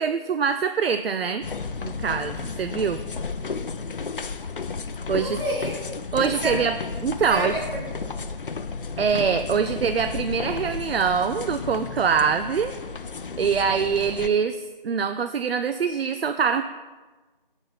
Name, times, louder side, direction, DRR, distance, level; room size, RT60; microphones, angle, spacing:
voice 1, 0.0-1.4 1.8-3.0 5.1-5.4 6.1-6.7 7.0-7.6 9.0-12.7 13.4-16.6, right 6 dB, 85° right, 9 dB, 0.4 m, -24 dB
sound 1, 1.4-14.3, left 4 dB, 65° left, 0.5 m, -33 dB
voice 2, 5.1-6.0 6.4-6.7 7.3-8.4, equal, 65° right, -3 dB, 2.3 m, -31 dB
7.8 x 3.9 x 5.6 m, 1.3 s
figure-of-eight pair, 175°, 29 cm